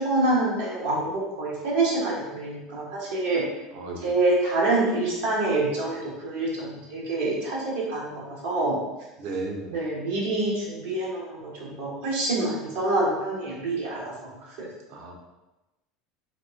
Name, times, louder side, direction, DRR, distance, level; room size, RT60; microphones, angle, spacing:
voice 1, 0.0-3.4 4.0-8.8 9.7-14.1 14.6-14.7, right 2 dB, 80° right, -6 dB, 1.1 m, -26 dB
voice 2, 3.7-4.1 9.2-9.7 14.9-15.1, right 3 dB, 60° right, 0 dB, 0.7 m, -34 dB
4.0 x 2.4 x 2.5 m, 1.0 s
hypercardioid pair, 75°, 0 cm